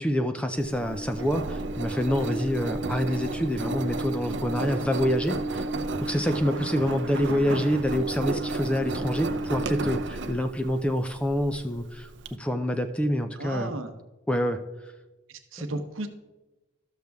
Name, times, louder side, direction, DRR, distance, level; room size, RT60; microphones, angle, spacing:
voice 1, 0.0-5.7 6.0-12.1 12.4-13.7 14.3-14.7 15.7-15.8, equal, 5° left, 7 dB, 0.4 m, -27 dB
Engine, 0.6-12.3, right 2 dB, 60° right, 0.6 m, -32 dB
voice 2, 13.4-13.9 15.3-16.1, right 2 dB, 75° right, 7 dB, 0.9 m, -34 dB
13.0 x 6.6 x 3.5 m, 1.1 s
head